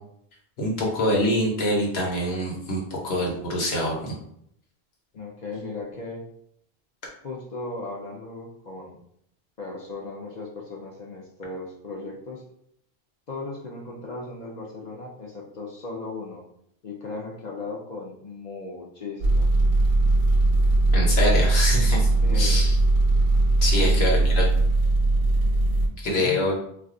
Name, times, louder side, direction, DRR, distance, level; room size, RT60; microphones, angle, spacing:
voice 1, 0.6-4.2 20.9-22.1 22.3-22.7 23.6-24.4 26.0-26.6, left 1 dB, 85° left, -2 dB, 1.1 m, -25 dB
voice 2, 5.1-6.3 7.2-9.0 9.6-12.4 13.3-16.4 16.8-19.5 22.2-22.7 23.7-24.1 26.0-26.4, left 3 dB, 55° left, -2 dB, 0.5 m, -36 dB
sound 1, 19.2-25.9, right 2 dB, 60° right, 0.6 m, -20 dB
2.3 x 2.3 x 3.6 m, 0.72 s
omnidirectional pair, 1.0 m